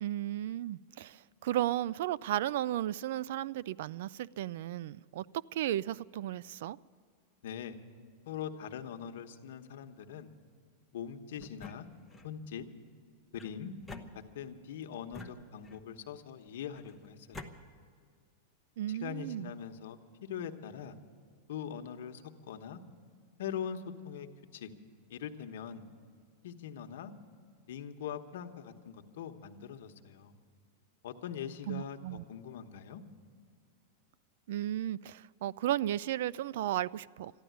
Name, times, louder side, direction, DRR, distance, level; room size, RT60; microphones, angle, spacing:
voice 1, 0.0-5.3 5.5-6.8 18.8-19.5 31.7-32.2 34.5-37.3, right 13 dB, 65° right, 0.3 m, -34 dB
voice 2, 7.4-7.8 8.2-10.3 10.9-11.9 12.2-12.6 13.3-13.7 14.3-17.5 18.9-20.9 21.5-22.2 22.5-22.8 23.4-24.3 24.5-24.7 25.1-25.8 26.4-27.1 27.7-30.3 31.0-33.0, left 8 dB, 75° left, 1.1 m, -42 dB
sound 1, 11.4-12.3 13.3-14.6 15.1-16.0 16.7-17.5, left 3 dB, 5° left, 0.9 m, -49 dB
13.5 x 11.5 x 9.3 m
supercardioid pair, 155°, 0 cm